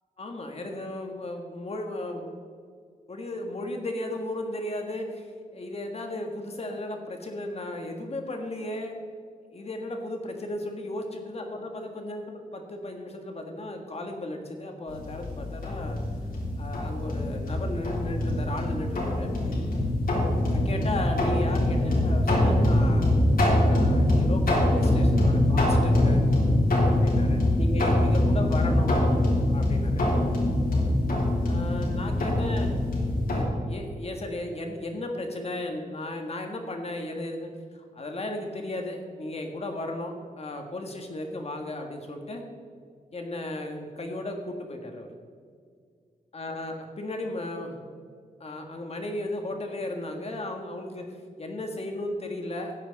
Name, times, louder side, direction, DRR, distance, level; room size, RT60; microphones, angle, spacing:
voice 1, 0.2-2.3 3.1-5.3 5.5-9.0 9.5-12.2 12.5-16.0 16.6-19.7 20.5-23.1 23.5-26.2 26.9-29.0 29.5-30.0 31.4-32.7 33.3-42.4 43.1-45.1 46.3-47.8 48.4-52.7, left 1 dB, 45° left, 3 dB, 1.7 m, -35 dB
sound 1, 14.9-33.4, left 1 dB, 80° left, 3.6 m, -24 dB
15.0 x 9.4 x 4.1 m, 2.1 s
wide cardioid pair, 130°, 15 cm